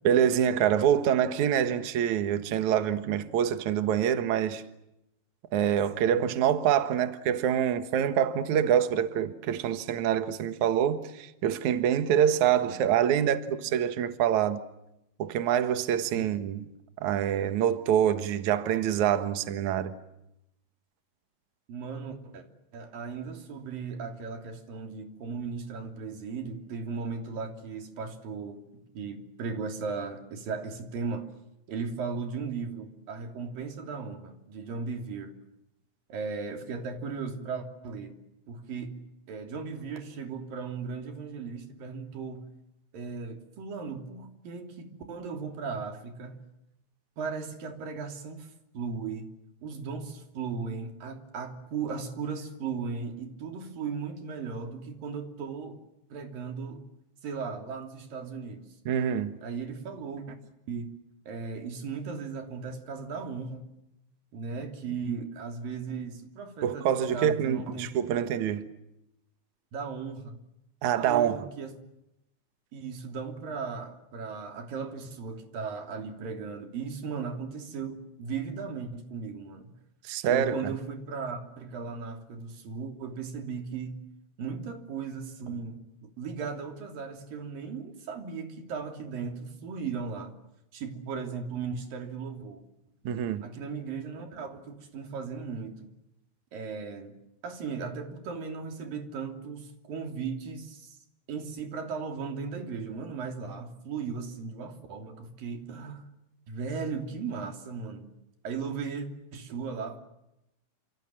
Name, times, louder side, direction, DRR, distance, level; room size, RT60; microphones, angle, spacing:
voice 1, 0.0-4.6 5.5-14.6 15.2-16.6 17.0-19.9 58.8-59.4 66.6-68.6 70.8-71.4 80.0-80.6 93.0-93.5, right 9 dB, 90° right, 1.6 m, -26 dB
voice 2, 5.9-6.3 12.6-12.8 16.1-16.3 21.7-22.5 22.7-28.6 28.9-31.3 31.7-35.3 36.1-38.2 38.5-39.0 39.3-42.5 42.9-46.4 47.2-48.5 48.7-49.3 49.6-55.8 56.1-56.8 57.2-58.6 59.4-60.4 60.7-60.9 61.3-63.7 64.3-67.9 68.1-68.2 69.7-70.4 71.0-71.7 72.7-79.7 80.3-84.0 84.4-90.3 90.7-92.6 93.4-95.9 96.5-97.2 97.4-101.0 101.3-106.1 106.5-108.1 108.4-110.0, right 5 dB, 50° right, 4.3 m, -37 dB
29.0 x 27.5 x 7.5 m
omnidirectional pair, 5.8 m